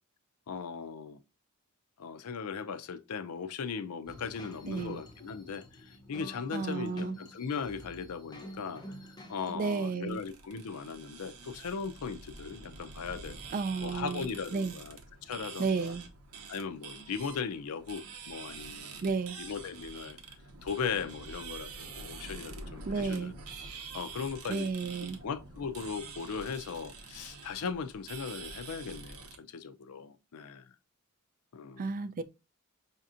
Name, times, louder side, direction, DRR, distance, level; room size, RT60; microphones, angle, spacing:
voice 1, 0.5-1.2 2.0-13.4 13.8-15.9 16.5-20.2 20.6-23.4 23.9-24.7 25.2-30.7 31.5-31.9, left 6 dB, 75° left, 0.5 m, -38 dB
sound 1, 4.1-9.5, equal, 20° left, 0.6 m, -48 dB
voice 2, 4.7-5.0 6.5-7.2 9.5-10.2 13.5-14.7 15.6-16.0 19.0-19.4 22.9-23.3 24.5-25.2 31.8-32.2, right 4 dB, 40° right, 0.3 m, -32 dB
sound 2, 10.1-29.4, right 4 dB, 85° right, 0.8 m, -46 dB
5.1 x 2.8 x 2.4 m
head